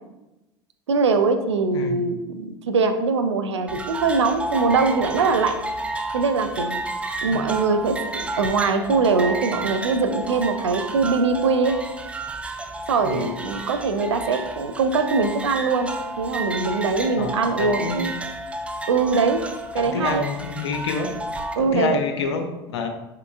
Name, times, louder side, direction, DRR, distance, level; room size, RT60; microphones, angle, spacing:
voice 1, 0.9-5.5 6.1-6.8 7.2-11.8 12.9-15.9 16.2-18.1 18.9-19.4 19.7-20.3 21.6-22.0, right 4 dB, 90° right, 8 dB, 0.4 m, -22 dB
sound 1, 3.7-21.5, right 2 dB, 10° right, 0.3 m, -31 dB
voice 2, 17.6-18.0 19.8-21.1 21.6-22.9, left 5 dB, 80° left, 5 dB, 0.5 m, -27 dB
3.7 x 3.2 x 2.3 m, 0.99 s
hypercardioid pair, 80°, 14 cm